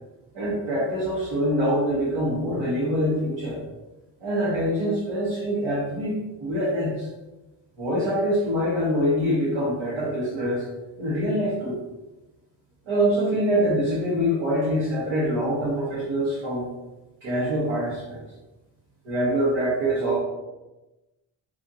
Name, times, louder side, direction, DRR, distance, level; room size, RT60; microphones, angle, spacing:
voice 1, 0.3-3.6 4.2-7.1 7.8-10.6 11.0-11.8 12.9-16.7 17.2-18.2 19.0-20.2, equal, 90° right, -9 dB, 1.3 m, -24 dB
3.7 x 2.7 x 2.7 m, 1.0 s
cardioid pair, 80°, 46 cm